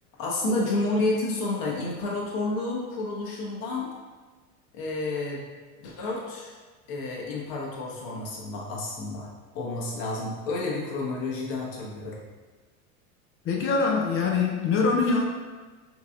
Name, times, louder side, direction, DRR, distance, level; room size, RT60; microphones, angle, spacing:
voice 1, 0.2-3.9 4.7-5.4 5.8-6.5 6.9-9.3 9.5-12.2, left 2 dB, 55° left, -3 dB, 1.1 m, -30 dB
voice 2, 13.5-15.3, left 4 dB, 30° left, 0 dB, 0.5 m, -23 dB
3.8 x 2.8 x 2.4 m, 1.4 s
hypercardioid pair, 100°, 44 cm